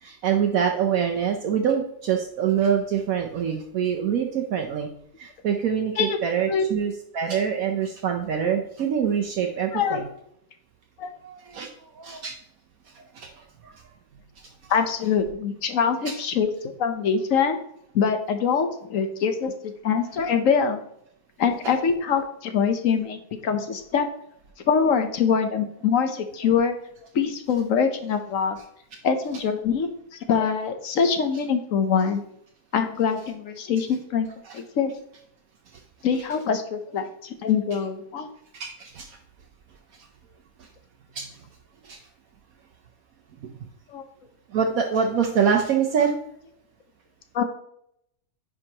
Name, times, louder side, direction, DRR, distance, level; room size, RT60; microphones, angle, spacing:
voice 1, 0.0-4.9 5.2-10.1 11.2-11.7 12.0-12.3 12.9-13.3 13.6-13.9 16.1-16.2 21.6-21.7 38.5-39.2 41.1-41.3 41.8-42.0 44.5-46.1, right 7 dB, 70° right, 2 dB, 1.1 m, -25 dB
voice 2, 9.7-10.1 11.0-11.1 14.7-17.6 17.9-20.8 21.4-24.1 24.7-26.7 27.1-28.6 29.0-29.9 30.3-32.2 32.7-34.3 34.5-34.9 36.0-38.3 43.9-44.0 47.3-47.4, left 6 dB, 65° left, 7 dB, 1.2 m, -24 dB
9.8 x 5.0 x 2.9 m, 0.73 s
omnidirectional pair, 1.6 m